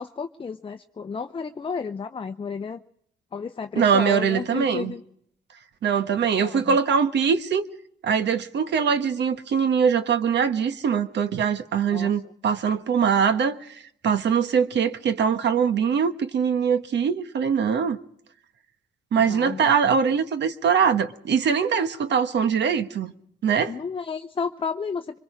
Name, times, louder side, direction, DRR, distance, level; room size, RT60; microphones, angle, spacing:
voice 1, 0.0-2.8 3.3-5.0 6.4-6.8 11.9-12.1 19.3-19.9 23.7-25.2, left 5 dB, 25° left, 0.7 m, -32 dB
voice 2, 3.7-4.9 5.8-7.6 8.0-18.0 19.1-23.1 23.4-23.7, right 7 dB, 60° right, 1.3 m, -22 dB
24.5 x 21.5 x 5.0 m
cardioid pair, 90°, 20 cm